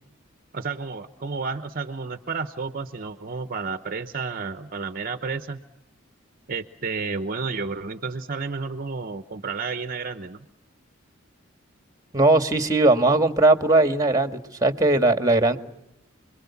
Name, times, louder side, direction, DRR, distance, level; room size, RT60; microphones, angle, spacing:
voice 1, 0.5-5.6 6.5-10.5, right 4 dB, 45° right, 10 dB, 0.9 m, -31 dB
voice 2, 12.1-15.6, right 2 dB, 20° right, 8 dB, 1.6 m, -19 dB
29.5 x 22.0 x 7.2 m, 0.85 s
head